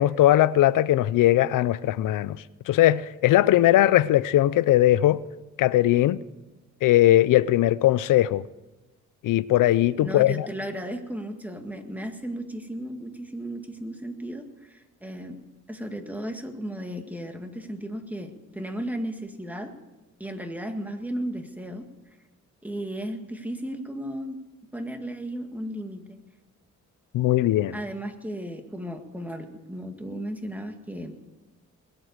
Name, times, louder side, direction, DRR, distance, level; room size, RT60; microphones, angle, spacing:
voice 1, 0.0-2.4 2.7-5.2 5.6-6.2 6.8-8.4 9.2-10.5 27.1-27.8, left 14 dB, 90° left, 0.5 m, -20 dB
voice 2, 10.0-15.4 15.7-19.7 20.2-21.8 22.6-24.4 24.7-26.2 27.7-31.1, right 1 dB, 5° right, 2.0 m, -35 dB
21.0 x 8.1 x 8.0 m
cardioid pair, 90°, 31 cm